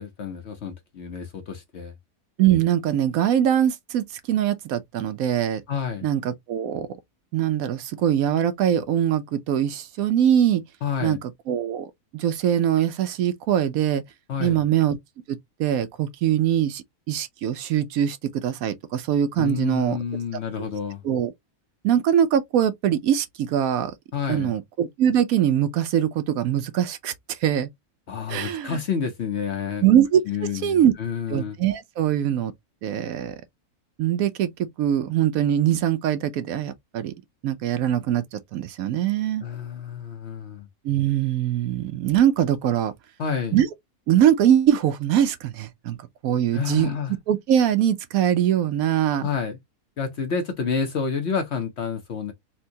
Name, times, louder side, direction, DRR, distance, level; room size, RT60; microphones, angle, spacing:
voice 1, 0.0-1.9 5.7-6.1 10.8-11.2 14.3-14.7 19.4-21.0 24.1-24.5 28.1-29.9 30.3-31.6 39.4-40.7 43.2-43.6 46.5-47.1 49.2-49.6 50.0-52.3, left 6 dB, 55° left, 0.8 m, -29 dB
voice 2, 2.4-5.6 6.0-6.9 7.3-10.6 11.0-11.2 11.5-14.0 14.4-15.0 15.3-20.0 21.0-21.3 21.8-23.9 24.3-27.7 28.3-28.8 29.8-30.2 30.6-30.9 31.3-32.5 32.8-33.4 34.0-37.1 37.4-39.5 40.8-42.9 43.5-43.7 44.1-46.0 46.2-46.9 47.3-49.3, right 10 dB, 70° right, 1.0 m, -22 dB
4.4 x 2.2 x 2.7 m
omnidirectional pair, 1.6 m